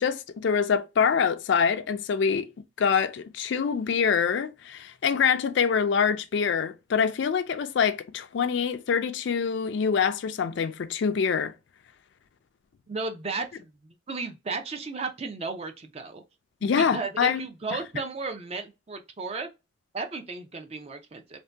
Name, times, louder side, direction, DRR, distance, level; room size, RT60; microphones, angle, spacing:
voice 1, 0.0-2.5 2.8-11.5 16.6-17.4, left 6 dB, 65° left, 0.3 m, -25 dB
voice 2, 12.9-13.7 14.1-16.2 16.6-19.5 19.9-21.4, right 4 dB, 30° right, 0.4 m, -34 dB
2.6 x 2.1 x 3.3 m
head